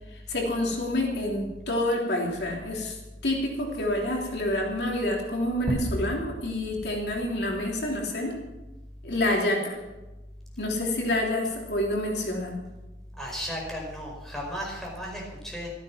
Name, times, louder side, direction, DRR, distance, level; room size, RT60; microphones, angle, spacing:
voice 1, 0.3-2.9 3.2-8.3 9.0-9.8 10.6-12.5, left 1 dB, 70° left, -1 dB, 3.3 m, -28 dB
sound 1, 5.7-8.3, right 1 dB, 40° right, 1.6 m, -35 dB
voice 2, 13.2-15.7, equal, ahead, -2 dB, 5.1 m, -35 dB
14.5 x 14.0 x 6.0 m, 1.1 s
head